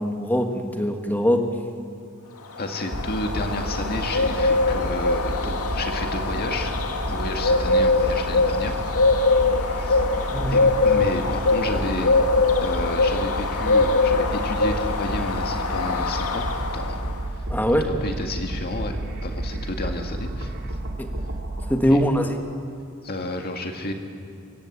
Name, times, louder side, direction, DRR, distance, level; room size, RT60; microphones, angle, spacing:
voice 1, 0.0-1.4 10.3-10.6 17.5-17.9 21.0-21.1 21.7-22.4, equal, 10° left, 4 dB, 1.6 m, -22 dB
Bird, 2.5-17.2, left 3 dB, 85° left, 1.9 m, -23 dB
voice 2, 2.6-6.7 7.1-8.8 9.6-10.2 10.5-12.1 12.6-16.5 16.7-17.0 17.3-17.5 18.0-20.5 21.9-22.0 23.0-23.9, left 1 dB, 45° left, 4 dB, 2.0 m, -31 dB
sound 1, 2.9-21.7, right 1 dB, 55° right, 2.6 m, -31 dB
24.0 x 15.5 x 8.4 m, 2.4 s
head